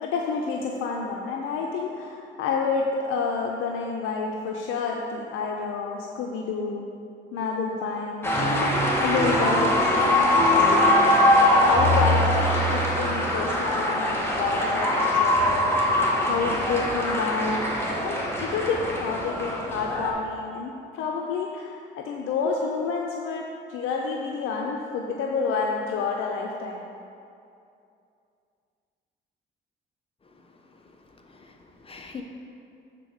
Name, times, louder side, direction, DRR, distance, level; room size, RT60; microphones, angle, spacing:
voice 1, 0.0-6.9 7.3-10.2 10.5-17.7 18.0-26.9, left 4 dB, 90° left, 0 dB, 0.6 m, -29 dB
sound 1, 8.2-20.1, left 1 dB, 10° left, 1.4 m, -22 dB
voice 2, 31.2-32.2, left 6 dB, 30° left, 3 dB, 0.8 m, -43 dB
6.7 x 3.9 x 6.4 m, 2.6 s
cardioid pair, 90°, 20 cm